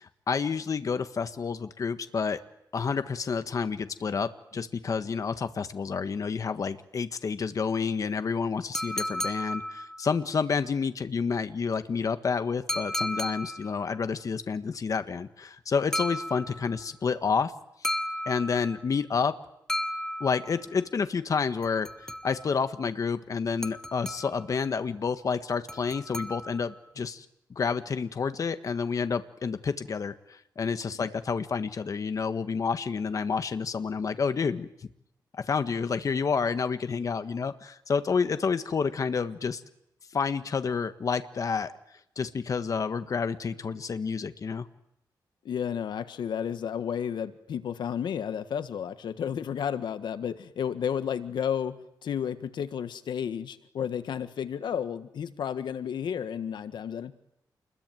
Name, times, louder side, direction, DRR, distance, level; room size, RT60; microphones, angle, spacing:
voice 1, 0.0-2.4 2.7-17.5 17.8-18.0 18.3-19.3 20.2-27.2 27.5-34.7 35.3-39.6 40.1-41.7 42.2-44.7, left 5 dB, 50° left, 10 dB, 1.5 m, -29 dB
sound 1, 8.7-10.2 12.7-13.8 15.9-16.8 17.8-18.9 19.7-20.7 21.6-22.6 23.6-24.5 25.7-26.8, equal, 5° left, 1.3 m, -34 dB
voice 2, 45.4-51.8 52.0-57.1, left 8 dB, 85° left, 11 dB, 1.5 m, -32 dB
28.5 x 21.5 x 9.3 m, 0.79 s
wide cardioid pair, 115°, 7 cm